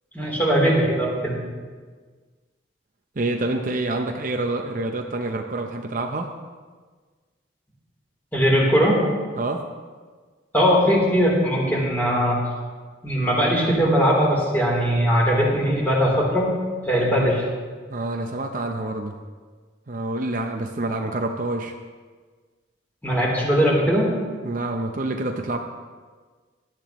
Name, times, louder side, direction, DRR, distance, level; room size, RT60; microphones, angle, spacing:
voice 1, 0.1-1.4 8.3-9.0 10.5-12.4 13.0-16.5 16.8-17.5 23.0-24.1, equal, 10° left, -4 dB, 3.5 m, -20 dB
voice 2, 3.2-6.3 9.3-9.6 17.9-19.2 19.9-21.7 24.4-25.6, right 2 dB, 45° right, 4 dB, 0.7 m, -27 dB
17.5 x 12.0 x 3.1 m, 1.5 s
head